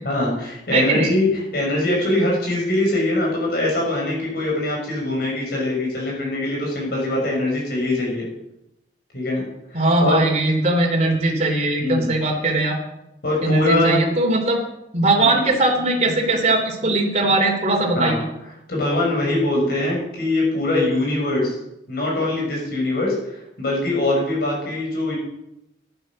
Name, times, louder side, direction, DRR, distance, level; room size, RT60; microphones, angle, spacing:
voice 1, 0.0-8.3 9.1-9.4 9.7-10.2 11.8-12.1 13.2-14.0 15.2-15.3 18.0-18.2 18.7-21.6 21.9-25.1, left 2 dB, 55° left, -2 dB, 6.2 m, -22 dB
voice 2, 0.7-1.1 9.7-12.8 13.4-14.6 14.9-18.3, right 2 dB, 35° right, 1 dB, 3.1 m, -20 dB
13.5 x 11.0 x 6.2 m, 0.86 s
head